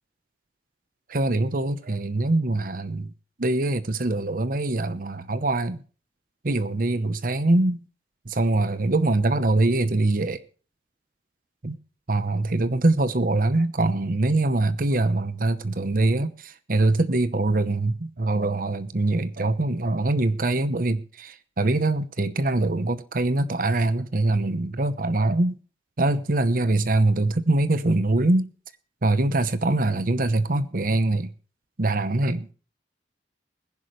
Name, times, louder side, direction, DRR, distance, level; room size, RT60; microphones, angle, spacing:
voice 1, 1.1-3.1 3.4-5.8 6.4-7.8 8.3-10.4 11.6-11.8 12.1-25.6 26.0-28.5 29.0-31.3 31.8-32.5, right 2 dB, 50° right, 0.9 m, -23 dB
20.5 x 11.0 x 3.2 m
head